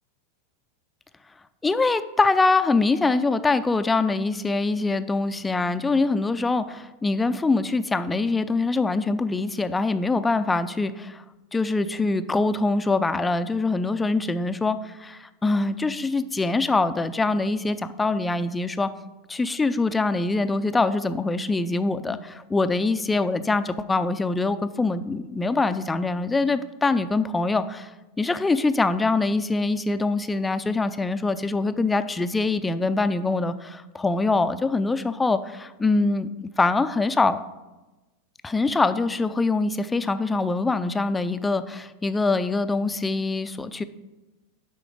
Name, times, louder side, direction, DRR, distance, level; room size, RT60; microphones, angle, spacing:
voice 1, 1.6-11.2 11.5-18.9 19.3-27.9 28.2-37.4 38.4-43.8, left 3 dB, 15° left, 11 dB, 0.4 m, -24 dB
9.7 x 3.8 x 5.1 m, 1.1 s
hypercardioid pair, 90°, 0 cm